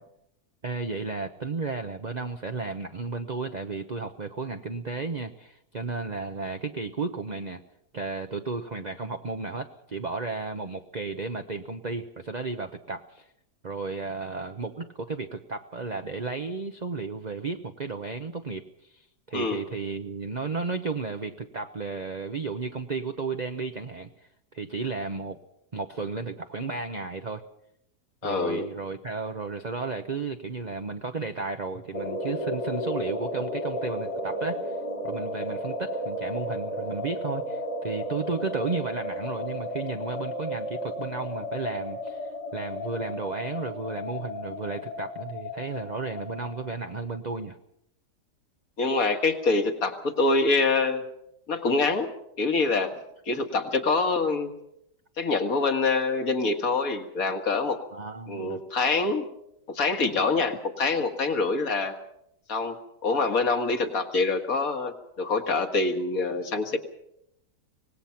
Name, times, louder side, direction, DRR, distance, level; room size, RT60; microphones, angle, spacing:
voice 1, 0.6-7.6 7.9-13.3 13.6-25.4 25.7-27.4 28.2-34.8 35.0-47.6 57.9-58.6, right 4 dB, 35° right, 5 dB, 0.9 m, -33 dB
voice 2, 28.2-28.7 48.8-51.0 51.5-52.1 52.4-52.9 53.3-54.5 55.2-57.8 58.3-59.3 59.7-62.0 62.5-62.8 63.0-66.8, left 3 dB, 55° left, 6 dB, 2.2 m, -25 dB
sound 1, 31.9-47.3, equal, 75° left, 3.4 m, -34 dB
25.0 x 19.0 x 5.9 m, 0.78 s
omnidirectional pair, 1.8 m